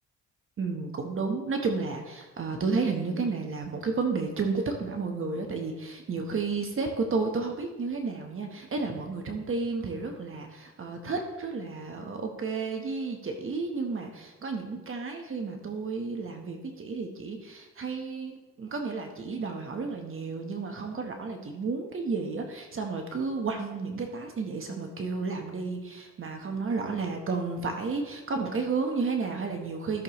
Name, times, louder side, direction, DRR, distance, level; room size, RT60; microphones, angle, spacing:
voice 1, 0.6-30.0, right 4 dB, 45° right, 3 dB, 1.3 m, -32 dB
13.0 x 6.7 x 3.2 m, 1.2 s
cardioid pair, 90°, 30 cm